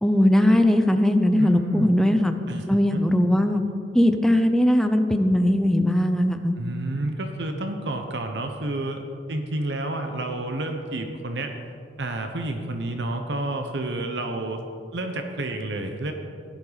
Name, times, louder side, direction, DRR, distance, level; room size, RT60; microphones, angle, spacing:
voice 1, 0.0-2.3 2.7-3.6 3.9-6.6, left 1 dB, 5° left, 6 dB, 0.7 m, -19 dB
voice 2, 1.4-1.9 2.5-2.6 2.9-3.0 6.6-9.0 9.3-11.5 12.0-14.6 14.9-16.1, right 2 dB, 70° right, 5 dB, 1.0 m, -30 dB
15.5 x 12.0 x 4.1 m, 2.3 s
head